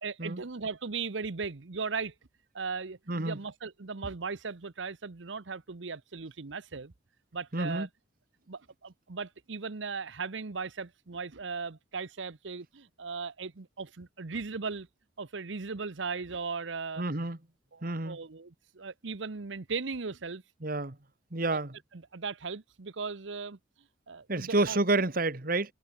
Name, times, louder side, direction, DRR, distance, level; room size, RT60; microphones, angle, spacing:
voice 1, 0.0-2.1 2.5-6.9 7.3-7.9 8.5-14.9 15.2-17.0 17.7-20.4 21.5-21.6 21.9-23.6 24.1-24.8, right 4 dB, 75° right, 0.9 m, -37 dB
voice 2, 7.5-7.9 17.0-17.4 17.8-18.2 20.6-21.0 21.3-21.7 24.3-25.7, right 2 dB, 50° right, 1.7 m, -29 dB
head